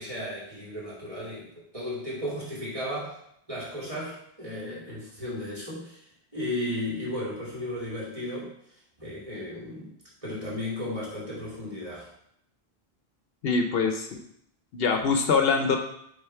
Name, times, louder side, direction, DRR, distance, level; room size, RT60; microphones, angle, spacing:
voice 1, 0.0-1.5 1.7-3.2 3.5-9.9 10.2-12.1, left 1 dB, 30° right, -7 dB, 2.6 m, -35 dB
voice 2, 13.4-14.2 14.7-15.8, left 5 dB, 70° left, 4 dB, 0.9 m, -24 dB
7.0 x 3.7 x 4.4 m, 0.73 s
omnidirectional pair, 1.1 m